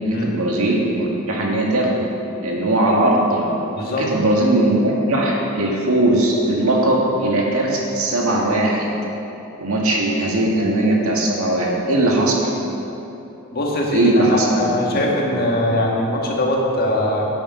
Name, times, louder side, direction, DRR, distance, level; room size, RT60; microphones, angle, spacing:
voice 1, 0.1-2.1 2.4-3.5 4.0-8.9 9.6-12.5 13.9-14.6 14.9-15.0 15.3-15.4, right 1 dB, 75° right, -2 dB, 2.1 m, -19 dB
voice 2, 3.7-4.1 13.5-17.3, left 1 dB, 45° left, -1 dB, 1.6 m, -21 dB
11.5 x 8.5 x 5.6 m, 2.9 s
head